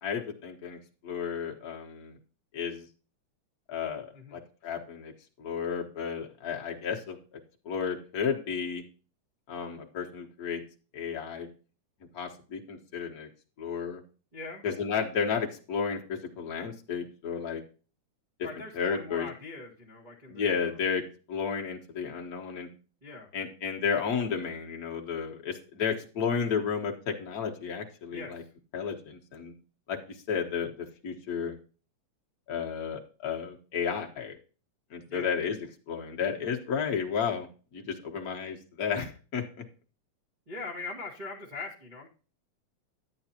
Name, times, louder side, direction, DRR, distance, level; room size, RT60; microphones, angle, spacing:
voice 1, 0.0-2.2 2.5-2.9 3.7-5.1 5.4-7.4 7.6-8.8 9.5-10.6 10.9-11.5 12.1-13.3 13.6-14.0 14.6-17.6 18.7-19.3 20.3-22.7 23.3-28.4 28.7-29.5 29.9-31.6 32.5-34.4 34.9-35.6 35.9-37.5 37.7-39.4, left 6 dB, 50° left, 1 dB, 1.0 m, -32 dB
voice 2, 14.3-14.6 18.4-20.8 23.0-23.3 28.1-28.5 35.0-35.3 40.5-42.1, left 3 dB, 20° right, -5 dB, 1.3 m, -41 dB
10.0 x 9.5 x 2.9 m, 0.36 s
omnidirectional pair, 3.5 m